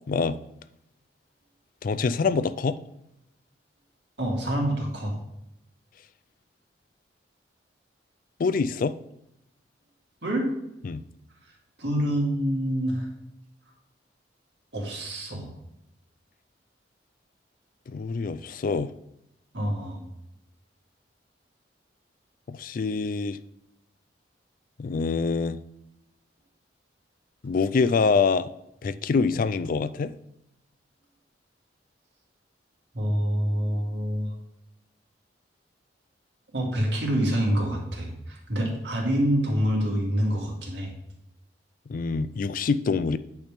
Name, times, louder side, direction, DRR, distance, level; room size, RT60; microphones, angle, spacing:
voice 1, 0.1-0.4 1.8-2.8 8.4-9.0 10.8-11.0 17.9-18.9 22.5-23.4 24.8-25.6 27.4-28.5 28.8-30.1 41.9-43.2, left 4 dB, 50° left, 14 dB, 0.4 m, -25 dB
voice 2, 4.2-5.1 10.2-10.5 11.8-13.1 14.7-15.5 19.5-20.0 32.9-34.3 36.5-40.9, equal, 70° right, -2 dB, 2.1 m, -26 dB
9.0 x 3.5 x 5.0 m, 0.83 s
head